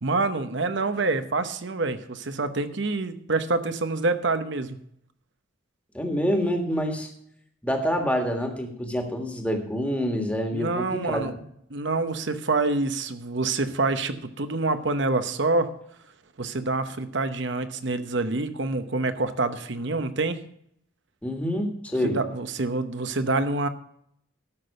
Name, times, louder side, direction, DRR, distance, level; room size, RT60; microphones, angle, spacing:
voice 1, 0.0-4.8 10.5-11.3 11.7-15.7 16.4-20.4 22.0-23.7, right 3 dB, 60° right, 10 dB, 0.9 m, -26 dB
voice 2, 5.9-7.1 7.6-11.4 21.2-22.2, equal, 5° left, 3 dB, 1.7 m, -27 dB
13.5 x 6.2 x 6.5 m, 0.71 s
head